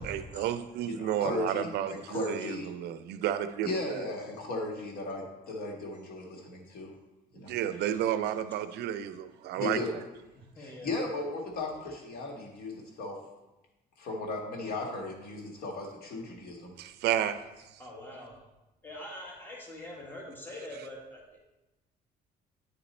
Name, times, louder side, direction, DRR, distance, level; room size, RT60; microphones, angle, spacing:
voice 1, 0.0-4.0 7.5-9.8 16.8-17.4, right 11 dB, 75° right, 11 dB, 0.4 m, -31 dB
voice 2, 0.8-2.7 3.6-6.9 7.3-7.5 9.5-9.9 10.6-13.3 14.0-16.7, left 2 dB, 65° left, 0 dB, 1.5 m, -36 dB
voice 3, 7.7-8.1 10.4-10.9 17.8-18.4 18.8-21.4, left 1 dB, 10° left, -2 dB, 1.5 m, -44 dB
8.9 x 4.0 x 4.2 m, 1.0 s
cardioid pair, 110°, 17 cm